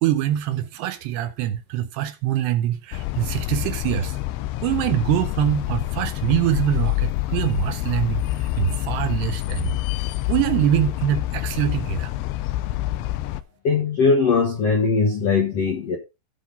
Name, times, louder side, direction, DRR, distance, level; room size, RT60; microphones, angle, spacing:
voice 1, 0.0-4.2 4.6-9.7 10.3-12.1, right 12 dB, 80° right, 2.6 m, -24 dB
sound 1, 2.9-13.4, left 16 dB, 90° left, 3.0 m, -27 dB
voice 2, 13.6-16.0, left 4 dB, 75° left, 1.4 m, -20 dB
16.0 x 5.6 x 3.9 m
omnidirectional pair, 5.2 m